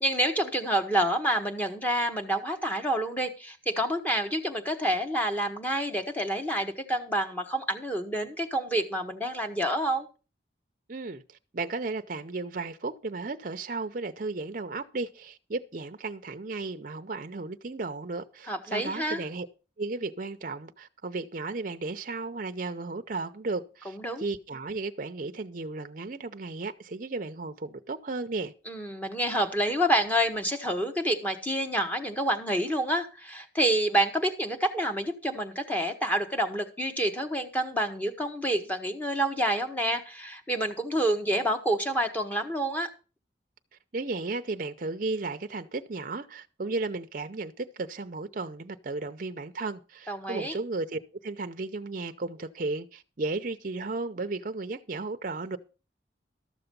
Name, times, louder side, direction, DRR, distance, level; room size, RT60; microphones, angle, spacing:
voice 1, 0.0-10.1 18.5-19.2 23.9-24.3 28.7-42.9 50.1-50.6, right 1 dB, 10° left, 1.1 m, -28 dB
voice 2, 10.9-19.5 19.8-28.5 43.9-55.6, right 3 dB, 45° right, 0.6 m, -34 dB
13.0 x 6.9 x 5.3 m
head